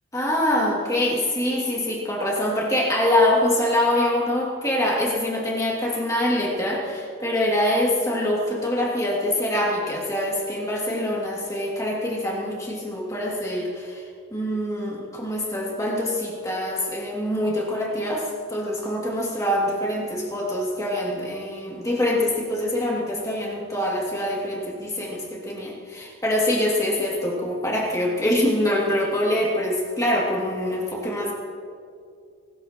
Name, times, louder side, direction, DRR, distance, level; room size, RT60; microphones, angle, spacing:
voice 1, 0.1-14.0 14.3-31.3, left 1 dB, 15° left, -3 dB, 2.7 m, -24 dB
23.5 x 19.5 x 3.1 m, 2.4 s
head